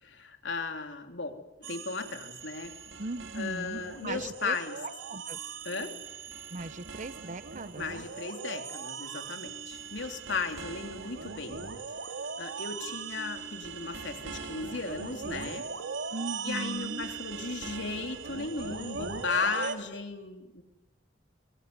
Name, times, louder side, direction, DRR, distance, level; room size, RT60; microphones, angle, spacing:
voice 1, 0.0-2.7 3.3-4.8 5.6-5.9 7.8-11.6 12.4-15.6 16.4-20.6, left 4 dB, 70° left, 4 dB, 3.5 m, -36 dB
sound 1, 1.6-19.8, right 5 dB, 80° right, 2.3 m, -40 dB
voice 2, 3.0-4.6 5.1-5.4 6.5-7.8 16.1-17.1, right 2 dB, 45° right, 15 dB, 0.9 m, -38 dB
24.5 x 24.0 x 9.7 m, 1.0 s
head